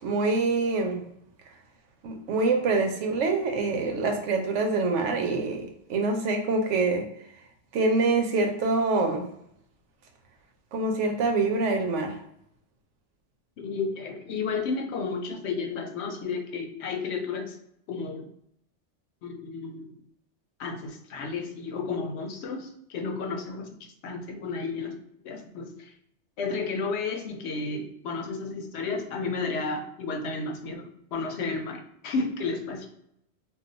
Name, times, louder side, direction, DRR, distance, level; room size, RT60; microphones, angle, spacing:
voice 1, 0.0-1.0 2.0-7.1 7.7-9.2 10.7-12.2, right 3 dB, 80° right, 4 dB, 0.9 m, -25 dB
voice 2, 13.6-17.6 17.9-18.3 19.2-20.0 20.6-23.8 24.0-25.0 25.2-25.9 26.4-32.9, left 4 dB, 70° left, 4 dB, 0.8 m, -32 dB
2.4 x 2.2 x 3.8 m, 0.73 s
omnidirectional pair, 1.2 m